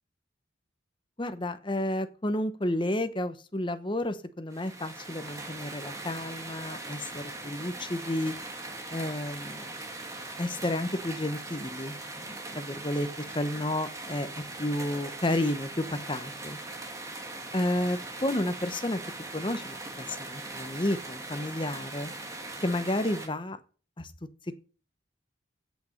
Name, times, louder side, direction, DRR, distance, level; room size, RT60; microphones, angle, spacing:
voice 1, 1.2-8.3 8.9-9.6 10.4-14.3 14.6-16.6 17.5-19.0 19.3-22.1 22.6-23.6 24.0-24.1, left 1 dB, 25° left, 10 dB, 0.9 m, -31 dB
sound 1, 4.5-23.3, right 2 dB, 15° right, 1.7 m, -40 dB
8.5 x 8.0 x 6.5 m, 0.38 s
head